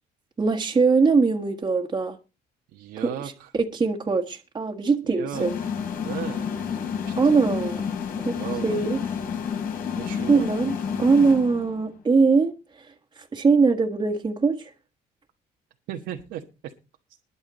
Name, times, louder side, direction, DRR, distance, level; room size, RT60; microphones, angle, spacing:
voice 1, 0.4-2.2 3.0-5.6 7.2-7.8 8.2-8.3 8.6-9.0 10.3-14.7, right 4 dB, 25° right, 1.7 m, -22 dB
voice 2, 2.7-3.5 5.0-5.5 6.0-6.5 7.1-7.4 8.3-8.8 10.0-10.5 15.9-16.7, right 11 dB, 80° right, 1.4 m, -35 dB
sound 1, 5.3-11.9, left 7 dB, 60° left, 7.8 m, -30 dB
21.5 x 7.2 x 4.2 m
cardioid pair, 110°, 17 cm